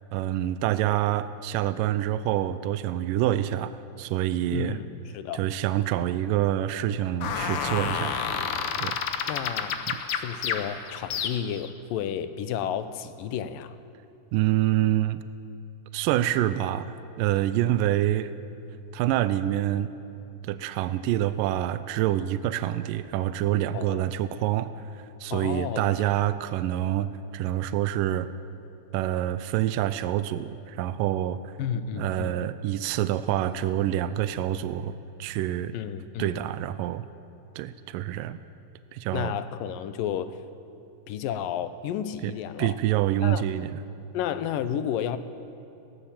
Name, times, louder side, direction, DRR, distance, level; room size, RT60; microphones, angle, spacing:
voice 1, 0.1-4.8 5.3-8.3 8.8-9.0 9.9-10.0 14.3-15.2 15.9-18.3 18.9-19.9 20.5-28.3 28.9-31.5 32.0-35.8 36.2-37.0 37.6-38.4 38.9-39.3 42.2-43.8, right 13 dB, 85° right, 13 dB, 2.3 m, -27 dB
voice 2, 4.5-4.9 5.1-5.4 9.3-9.8 10.1-13.8 23.7-24.1 25.3-26.1 31.6-32.4 35.7-36.4 39.1-40.4 41.1-42.8 43.2-43.5 44.1-45.2, left 9 dB, 85° left, 12 dB, 2.6 m, -32 dB
sound 1, 7.2-11.7, left 7 dB, 60° left, 1.5 m, -30 dB
22.5 x 17.5 x 7.5 m, 2.8 s
omnidirectional pair, 3.9 m